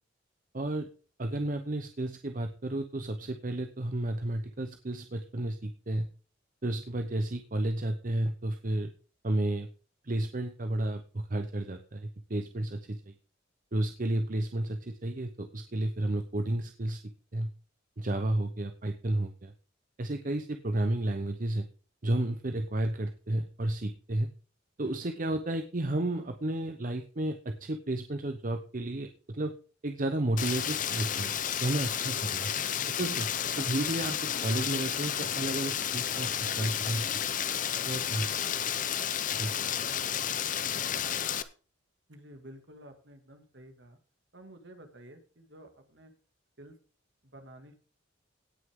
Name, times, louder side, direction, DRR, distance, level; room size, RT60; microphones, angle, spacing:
voice 1, 0.5-0.9 1.2-6.1 6.6-8.9 9.2-9.7 10.0-13.1 13.7-17.0 17.3-17.5 18.0-19.5 20.0-21.7 22.0-24.3 24.8-29.5 29.8-31.3 31.6-32.5 33.0-33.3 33.6-36.3 36.6-37.1 37.9-38.3 39.3-39.5, right 1 dB, 40° right, 7 dB, 0.8 m, -32 dB
Rain, 30.4-41.4, left 9 dB, 40° left, 0.7 m, -32 dB
voice 2, 42.1-44.0 44.3-46.1 46.6-46.8 47.2-47.8, right 1 dB, 60° right, 6 dB, 2.2 m, -51 dB
17.5 x 6.4 x 3.7 m, 0.38 s
head